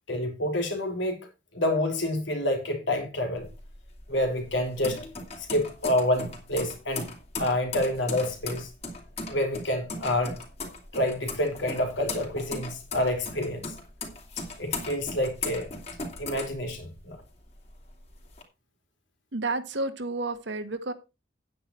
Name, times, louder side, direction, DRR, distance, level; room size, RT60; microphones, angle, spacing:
voice 1, 0.1-1.2 1.5-3.5 4.1-5.0 5.4-7.1 7.4-8.7 9.3-10.4 10.9-13.7 14.6-15.7 16.2-17.2, left 1 dB, 75° left, 3.5 m, -28 dB
sound 1, 3.4-17.2 17.6-18.4, left 3 dB, 35° left, 2.9 m, -38 dB
voice 2, 19.3-20.9, right 2 dB, 65° right, 1.5 m, -31 dB
9.5 x 9.4 x 4.4 m
head